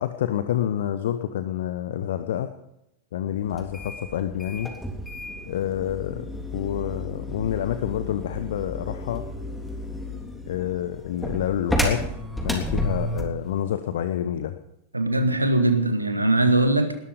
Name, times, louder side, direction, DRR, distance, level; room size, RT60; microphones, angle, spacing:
voice 1, 0.0-2.5 3.1-4.7 5.5-9.2 10.5-12.0 12.4-14.5, left 10 dB, 60° left, 10 dB, 1.0 m, -28 dB
sound 1, 3.5-13.4, left 1 dB, 5° left, 3.3 m, -31 dB
voice 2, 14.9-17.0, right 2 dB, 85° right, 8 dB, 1.9 m, -21 dB
20.0 x 12.5 x 5.2 m, 0.82 s
figure-of-eight pair, 90°, 0 cm